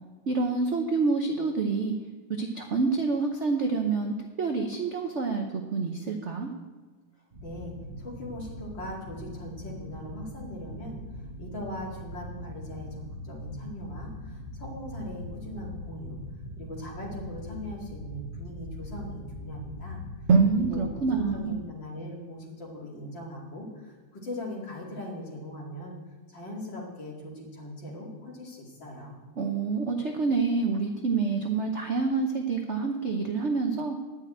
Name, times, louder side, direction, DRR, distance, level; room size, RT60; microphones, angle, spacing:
voice 1, 0.3-2.0 2.3-6.5 20.3-21.6 29.4-34.0, right 4 dB, 60° right, 3 dB, 0.7 m, -27 dB
sound 1, 7.3-21.5, left 1 dB, 25° right, 1.3 m, -41 dB
voice 2, 7.4-11.0 11.4-16.2 16.6-20.0 20.5-26.0 26.3-29.2, left 1 dB, 60° left, -3 dB, 3.2 m, -40 dB
11.0 x 6.2 x 8.7 m, 1.3 s
omnidirectional pair, 2.3 m